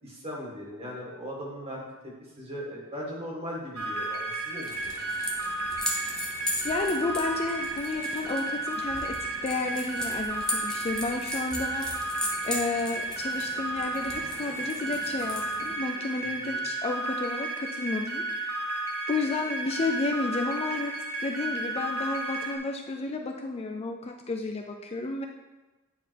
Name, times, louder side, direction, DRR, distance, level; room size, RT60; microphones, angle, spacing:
voice 1, 0.0-5.0 16.2-16.7, equal, 25° right, -3 dB, 1.8 m, -39 dB
sound 1, 3.7-22.6, right 2 dB, 85° right, 1.2 m, -33 dB
sound 2, 4.6-15.8, left 1 dB, 5° left, 1.0 m, -37 dB
voice 2, 6.6-18.6 19.1-20.9 21.2-25.3, left 3 dB, 30° left, 3 dB, 0.4 m, -32 dB
9.0 x 3.7 x 4.6 m, 1.1 s
head